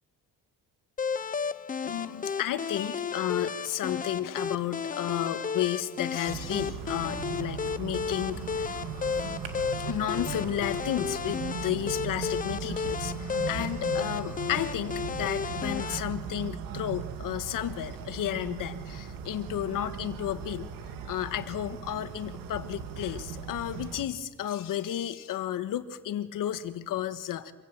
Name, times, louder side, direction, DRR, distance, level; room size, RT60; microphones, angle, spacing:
sound 1, 1.0-16.0, left 6 dB, 25° left, 0.7 m, -33 dB
voice 1, 1.8-8.8 9.8-20.7 21.1-27.5, left 11 dB, 70° left, 11 dB, 1.5 m, -32 dB
sound 2, 6.3-24.0, right 6 dB, 80° right, 2.2 m, -38 dB
26.0 x 16.0 x 7.6 m, 1.4 s
cardioid pair, 120°, 34 cm